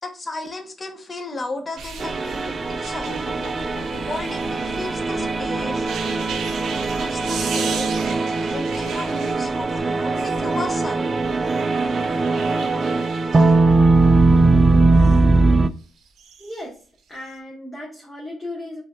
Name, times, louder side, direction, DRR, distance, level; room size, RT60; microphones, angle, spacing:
voice 1, 0.0-3.1 4.1-5.9 7.0-7.9 8.5-11.1, left 2 dB, 35° left, 5 dB, 1.0 m, -34 dB
sound 1, 1.8-15.2 16.1-16.6 17.2-17.3, right 5 dB, 70° right, 0.8 m, -36 dB
sound 2, 2.0-15.7, right 3 dB, 30° right, 0.3 m, -20 dB
sound 3, 3.0-9.9 10.6-11.0 12.0-12.6 13.4-13.6 13.9-14.0, left 3 dB, 85° left, 1.0 m, -42 dB
voice 2, 16.4-16.8 17.1-18.8, left 1 dB, 10° left, -6 dB, 1.8 m, -35 dB
5.1 x 3.4 x 2.4 m, 0.39 s
cardioid pair, 90°, 0 cm